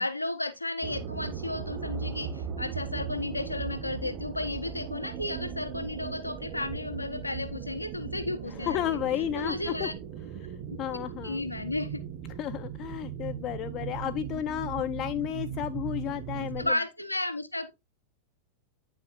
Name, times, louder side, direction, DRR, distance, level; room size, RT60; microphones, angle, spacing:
voice 1, 0.0-9.0 9.3-9.9 10.7-10.8 11.2-12.0 16.6-17.7, left 2 dB, 85° left, 1.2 m, -33 dB
sound 1, 0.8-16.7, right 7 dB, 35° right, 1.5 m, -38 dB
voice 2, 8.6-9.9 10.8-11.4 12.4-16.7, left 12 dB, 35° left, 0.6 m, -32 dB
9.8 x 6.6 x 2.5 m
figure-of-eight pair, 90°, 0 cm